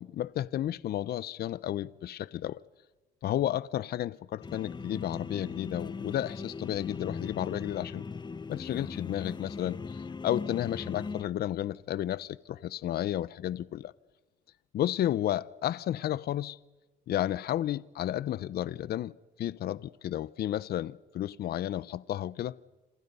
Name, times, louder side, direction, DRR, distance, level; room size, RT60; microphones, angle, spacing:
voice 1, 0.0-2.6 3.2-8.1 8.5-13.9 14.7-16.6 17.1-19.1 19.4-22.5, left 12 dB, 60° left, 0.7 m, -32 dB
sound 1, 4.4-11.2, left 4 dB, 25° left, 0.8 m, -39 dB
28.0 x 27.0 x 5.5 m
cardioid pair, 85°, 18 cm